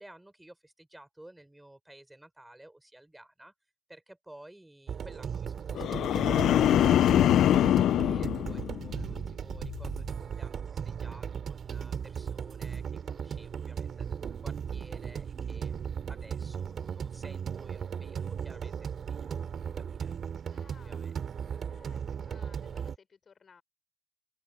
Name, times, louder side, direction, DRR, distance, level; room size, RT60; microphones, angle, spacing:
voice 1, 0.0-3.5 3.9-6.9 7.3-15.7 16.1-20.2 20.8-21.1 21.5-21.6 22.1-22.5, right 1 dB, 10° right, 6.0 m, -54 dB
sound 1, 4.9-23.0, right 7 dB, 55° right, 2.5 m, -37 dB
sound 2, 5.7-9.2 9.6-10.0, left 11 dB, 75° left, 0.3 m, -24 dB
voice 2, 15.6-15.9 20.4-21.2 21.6-23.6, left 6 dB, 45° left, 5.3 m, -60 dB
open air
cardioid pair, 90°, 0 cm